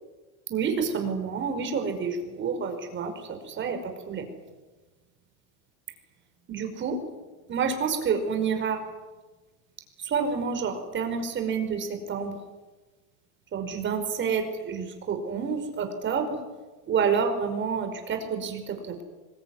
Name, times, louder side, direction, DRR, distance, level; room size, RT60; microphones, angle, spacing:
voice 1, 0.5-3.1 3.5-4.2 6.5-7.0 7.5-8.8 10.0-12.3 13.5-16.4 16.9-19.0, right 6 dB, 30° right, 6 dB, 5.3 m, -28 dB
25.0 x 22.5 x 9.7 m, 1.2 s
cardioid pair, 160°, 39 cm